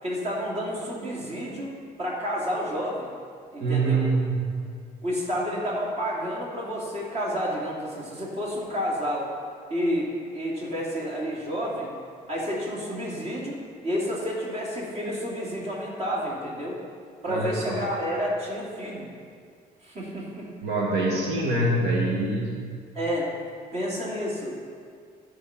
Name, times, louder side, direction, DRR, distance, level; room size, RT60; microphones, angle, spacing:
voice 1, 0.0-1.7 2.0-3.1 3.5-4.0 5.0-9.3 9.7-11.9 12.3-16.8 17.2-19.1 19.8-20.5 22.9-23.3 23.7-24.6, equal, 40° right, -3 dB, 2.7 m, -30 dB
voice 2, 3.6-4.6 17.3-17.9 20.6-22.7, right 2 dB, 80° right, -2 dB, 1.6 m, -25 dB
13.0 x 5.3 x 5.8 m, 2.2 s
cardioid pair, 110°, 17 cm